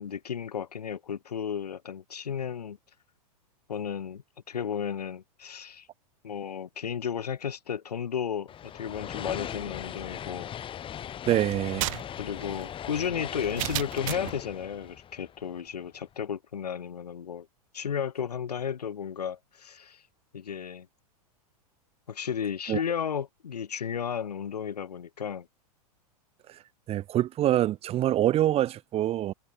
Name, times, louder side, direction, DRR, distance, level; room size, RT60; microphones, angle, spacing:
voice 1, 0.0-2.8 3.7-5.9 6.2-10.5 12.2-17.5 17.7-20.0 20.3-20.9 22.1-25.5, left 8 dB, 90° left, 6.7 m, -33 dB
sound 1, 8.5-15.9, left 10 dB, 25° left, 7.9 m, -39 dB
voice 2, 11.3-11.9 22.7-22.8 26.5-26.6 26.9-29.3, right 13 dB, 30° right, 2.1 m, -25 dB
sound 2, 11.5-14.4, right 19 dB, 60° right, 2.2 m, -34 dB
hypercardioid pair, 120°, 20 cm